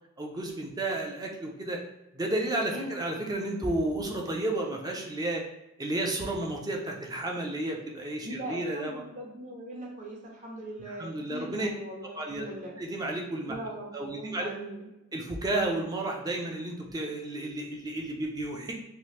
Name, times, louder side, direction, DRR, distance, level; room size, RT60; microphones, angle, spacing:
voice 1, 0.2-1.8 2.1-5.4 5.8-8.9 10.8-11.7 12.1-12.5 12.8-13.5 13.9-14.5 15.1-18.7, right 1 dB, 20° right, 0 dB, 0.4 m, -32 dB
voice 2, 8.2-12.8 13.5-14.9, right 1 dB, 35° right, -2 dB, 0.8 m, -40 dB
3.0 x 2.4 x 3.1 m, 0.93 s
head